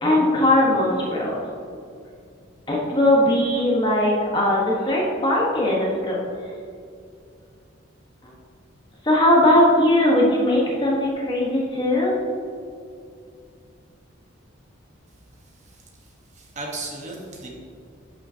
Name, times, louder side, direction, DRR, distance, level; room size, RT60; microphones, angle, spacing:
voice 1, 0.0-1.4 2.7-6.2 9.0-12.1, left 1 dB, 25° left, -3 dB, 1.2 m, -19 dB
voice 2, 15.6-17.5, right 2 dB, 35° right, -1 dB, 1.1 m, -36 dB
11.5 x 5.9 x 2.8 m, 2.4 s
head